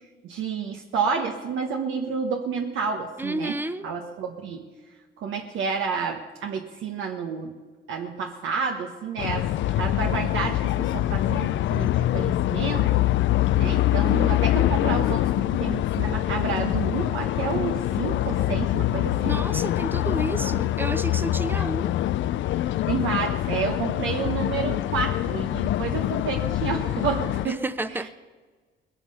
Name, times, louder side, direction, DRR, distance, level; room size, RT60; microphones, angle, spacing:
voice 1, 0.2-4.6 5.2-7.5 7.9-12.9 13.6-19.4 21.5-21.6 22.9-27.6 27.9-28.1, right 5 dB, 80° right, 3 dB, 1.2 m, -30 dB
voice 2, 3.2-3.9 19.2-21.9 27.4-28.1, right 2 dB, 10° right, 12 dB, 0.7 m, -31 dB
sound 1, 9.2-27.5, left 14 dB, 70° left, 0.4 m, -24 dB
20.5 x 9.0 x 5.6 m, 1.4 s
cardioid pair, 90°, 20 cm